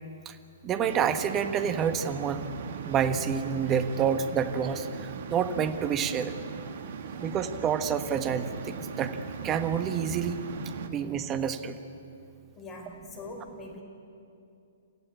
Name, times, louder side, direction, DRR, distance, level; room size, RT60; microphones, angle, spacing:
voice 1, 0.6-2.4 2.8-6.3 7.2-9.2 9.4-10.4 10.9-11.8, right 7 dB, 25° right, 9 dB, 1.3 m, -28 dB
sound 1, 0.8-10.9, right 6 dB, 55° right, 1.6 m, -39 dB
voice 2, 12.6-13.8, left 2 dB, 25° left, 3 dB, 4.9 m, -42 dB
28.5 x 15.0 x 8.6 m, 2.6 s
hypercardioid pair, 125°, 0 cm